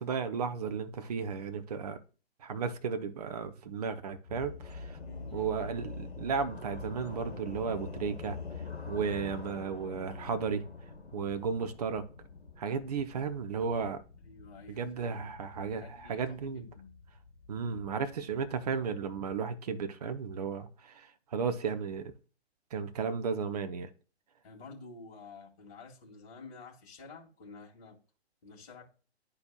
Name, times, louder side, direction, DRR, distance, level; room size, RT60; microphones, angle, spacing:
voice 1, 0.0-2.0 2.4-5.0 5.3-8.4 8.9-10.6 11.1-12.0 12.6-14.0 14.7-16.7 17.5-22.1 22.7-23.9, right 6 dB, 35° right, 0.7 m, -34 dB
sound 1, 4.3-19.1, left 4 dB, 70° left, 1.3 m, -46 dB
voice 2, 5.0-5.5 14.2-15.3 15.8-17.0 24.4-28.0 28.4-28.8, left 4 dB, 35° left, 2.3 m, -50 dB
11.5 x 4.3 x 2.3 m
figure-of-eight pair, 130°, 33 cm